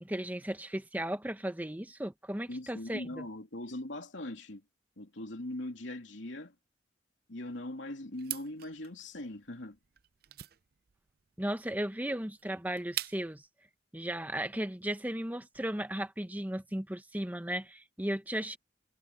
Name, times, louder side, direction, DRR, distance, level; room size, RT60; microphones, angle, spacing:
voice 1, 0.0-3.2 11.4-13.4 13.9-18.6, right 1 dB, 10° right, 0.9 m, -35 dB
voice 2, 2.5-4.6 5.0-6.5 7.3-9.8, left 1 dB, 85° left, 3.0 m, -41 dB
sound 1, 8.2-13.5, right 14 dB, 55° right, 0.5 m, -43 dB
head